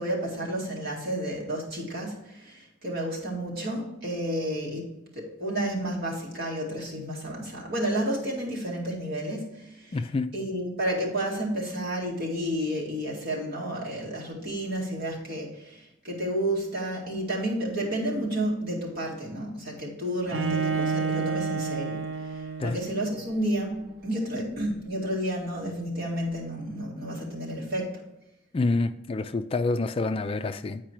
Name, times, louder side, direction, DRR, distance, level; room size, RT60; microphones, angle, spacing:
voice 1, 0.0-4.9 5.2-10.0 10.3-22.0 22.6-27.9, right 1 dB, 50° right, 2.2 m, -31 dB
voice 2, 9.9-10.3 22.6-22.8 28.5-30.8, left 3 dB, 30° left, 0.3 m, -27 dB
Bowed string instrument, 20.3-23.3, right 5 dB, 75° right, 0.8 m, -30 dB
8.9 x 4.8 x 4.5 m
head